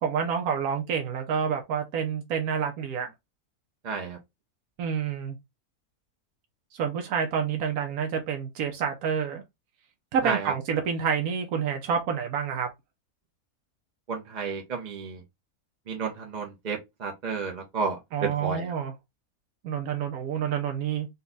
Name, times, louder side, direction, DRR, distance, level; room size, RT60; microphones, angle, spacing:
voice 1, 0.0-3.1 4.8-5.4 6.7-9.4 10.1-12.7 18.1-18.9 19.6-21.1, right 7 dB, 80° right, 1.2 m, -28 dB
voice 2, 3.8-4.2 10.2-10.5 14.1-15.2 15.9-18.7, right 5 dB, 40° right, 0.7 m, -32 dB
4.2 x 2.3 x 3.8 m
omnidirectional pair, 1.6 m